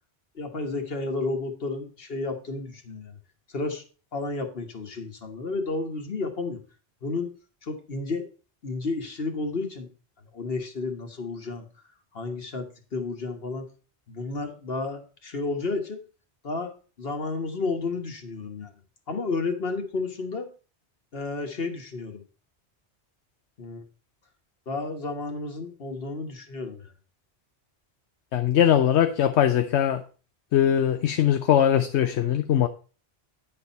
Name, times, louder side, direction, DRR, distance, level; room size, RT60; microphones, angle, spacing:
voice 1, 0.3-3.2 3.5-3.8 4.1-6.6 7.0-7.3 7.6-8.2 8.6-9.9 10.3-11.7 12.1-12.7 12.9-13.7 14.1-16.0 16.4-16.7 17.0-18.7 19.1-20.5 21.1-22.2 23.6-23.8 24.7-26.9, left 3 dB, 60° left, 1.4 m, -31 dB
voice 2, 28.3-30.0 30.5-32.7, left 10 dB, 85° left, 0.9 m, -21 dB
9.7 x 4.5 x 5.3 m
omnidirectional pair, 1.1 m